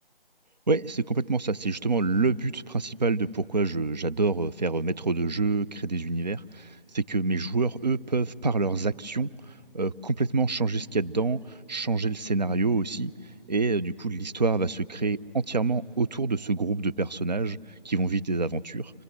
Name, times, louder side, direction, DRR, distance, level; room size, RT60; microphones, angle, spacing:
voice 1, 0.7-9.3 9.7-13.1 13.5-17.6 17.8-18.9, right 3 dB, 45° right, 16 dB, 0.4 m, -27 dB
25.5 x 17.5 x 7.9 m, 2.8 s
figure-of-eight pair, 155°, 29 cm